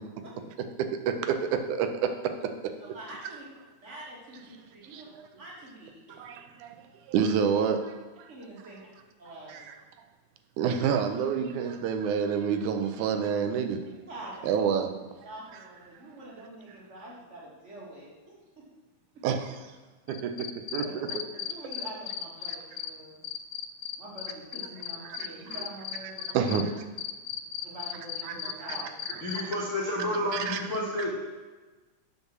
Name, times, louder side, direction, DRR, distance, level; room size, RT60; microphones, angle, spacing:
voice 1, 0.8-2.3 4.9-5.3 6.2-6.8 7.1-8.3 9.5-9.7 10.6-13.8 14.4-14.9 19.2-19.6 20.1-21.2 25.1-25.3 26.3-26.7 28.2-29.2 30.3-30.6, right 7 dB, 90° right, 7 dB, 2.2 m, -29 dB
voice 2, 2.9-3.5 3.8-5.1 5.4-6.3 8.3-8.8 9.2-9.7 14.1-14.7 15.2-18.1 20.8-23.2 24.0-26.6 27.6-29.0 29.3-29.4, right 1 dB, 25° right, -5 dB, 2.0 m, -45 dB
Cricket, 20.1-22.9 23.2-26.6 27.0-29.4, left 11 dB, 85° left, 1.9 m, -35 dB
voice 3, 29.1-31.2, left 1 dB, 45° left, -5 dB, 0.9 m, -30 dB
7.2 x 5.6 x 6.1 m, 1.2 s
omnidirectional pair, 3.4 m